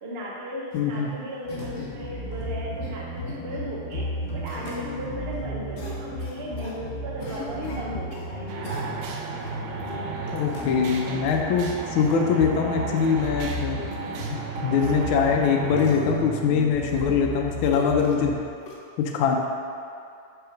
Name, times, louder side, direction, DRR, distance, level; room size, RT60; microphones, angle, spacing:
voice 1, 0.0-4.1 4.3-8.8, equal, 45° right, -4 dB, 0.8 m, -36 dB
voice 2, 0.7-1.1 10.3-13.8 14.3-18.4 19.0-19.4, left 6 dB, 80° left, 1 dB, 1.4 m, -23 dB
sound 1, 0.7-1.0 1.5-2.0 2.5-2.9 3.3-3.7 4.4-4.8 5.8-6.8 7.2-8.3 8.6-9.2 9.8-9.9 10.3-10.4 11.3-11.4 12.0-12.1 12.4-12.5 13.0-13.1 13.6-13.7 13.9-14.0 14.9-15.0 15.7-16.2 16.7-17.4 17.7-18.2 18.6-18.8, left 3 dB, 55° left, 1.2 m, -41 dB
sound 2, 1.4-18.4, equal, 35° left, 1.5 m, -34 dB
sound 3, 8.5-15.9, right 4 dB, 85° right, 1.5 m, -35 dB
5.6 x 4.2 x 5.7 m, 2.5 s
omnidirectional pair, 2.3 m